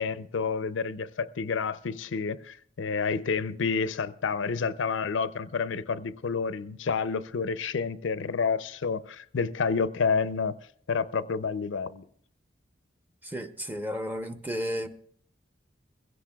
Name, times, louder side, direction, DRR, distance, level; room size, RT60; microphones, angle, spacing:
voice 1, 0.0-10.5 10.9-12.0, left 5 dB, 85° left, 0.5 m, -29 dB
voice 2, 13.2-14.9, equal, 10° right, 0.7 m, -33 dB
22.0 x 16.0 x 2.3 m
head